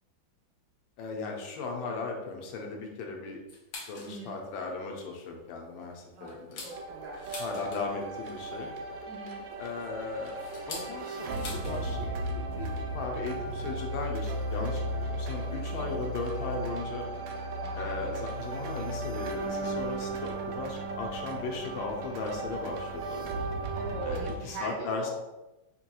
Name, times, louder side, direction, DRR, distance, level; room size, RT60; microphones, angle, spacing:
voice 1, 1.0-3.4 3.9-6.7 7.4-8.8 9.6-10.4 10.7-12.1 12.3-17.1 17.8-23.3 24.1-25.1, left 3 dB, 85° left, 1 dB, 1.4 m, -37 dB
sound 1, 3.5-4.2 4.6-4.7 5.1-5.3 5.8-8.1 9.3-11.8 12.1-12.2 12.5-12.8 13.8-13.9 14.8-14.9 15.7-15.9 16.2-16.3 16.5-16.7, left 3 dB, 65° left, 1.2 m, -45 dB
voice 2, 4.0-4.4 6.1-7.6 9.0-9.5 15.8-16.0 17.6-18.1 23.7-25.1, right 2 dB, 70° right, -4 dB, 1.7 m, -42 dB
sound 2, 6.7-24.4, right 2 dB, 90° right, 0.7 m, -35 dB
5.2 x 2.9 x 2.3 m, 1.0 s
omnidirectional pair, 2.1 m